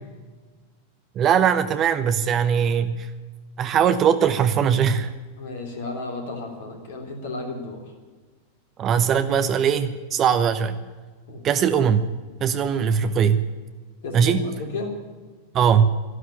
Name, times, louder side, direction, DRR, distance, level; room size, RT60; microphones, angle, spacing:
voice 1, 1.1-3.1 3.6-5.1 8.8-10.8 11.4-12.1 12.4-13.5 14.1-14.5 15.5-15.9, right 7 dB, 30° right, 11 dB, 0.8 m, -20 dB
voice 2, 5.4-7.8 11.3-11.4 14.0-14.9, left 2 dB, 55° left, 3 dB, 3.5 m, -33 dB
13.0 x 12.5 x 8.6 m, 1.4 s
figure-of-eight pair, 90°, 0 cm